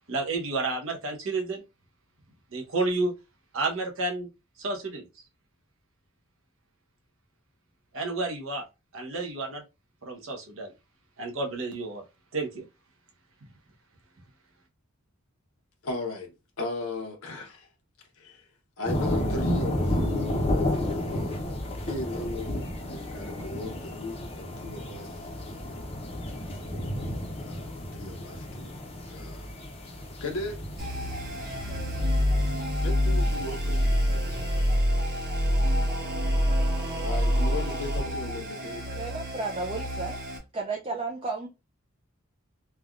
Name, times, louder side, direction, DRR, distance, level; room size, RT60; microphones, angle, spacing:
voice 1, 0.1-1.6 2.5-3.1 3.5-4.3 4.6-5.1 7.9-8.6 8.9-9.6 10.0-10.7 11.2-12.0 12.3-12.6, right 3 dB, 65° right, 0.8 m, -30 dB
voice 2, 15.8-17.7 18.2-18.5 18.8-20.8 21.0-21.5 21.8-25.8 27.4-28.7 29.1-29.5 30.2-30.6 32.8-34.6 37.0-38.9, left 2 dB, 80° left, 0.8 m, -37 dB
sound 1, 18.8-34.8, left 1 dB, 25° left, 0.6 m, -32 dB
sound 2, 30.8-40.4, equal, 45° right, 1.3 m, -27 dB
voice 3, 38.9-40.2 40.5-41.5, right 3 dB, 25° right, 0.4 m, -33 dB
3.3 x 2.2 x 2.4 m
head